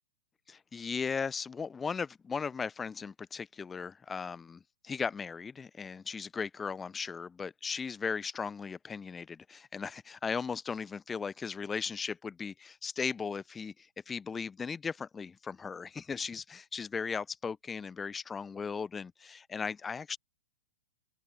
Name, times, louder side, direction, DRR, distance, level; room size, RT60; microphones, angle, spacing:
voice 1, 0.5-20.2, left 5 dB, 15° left, 0.8 m, -37 dB
open air
figure-of-eight pair, 110°, 0 cm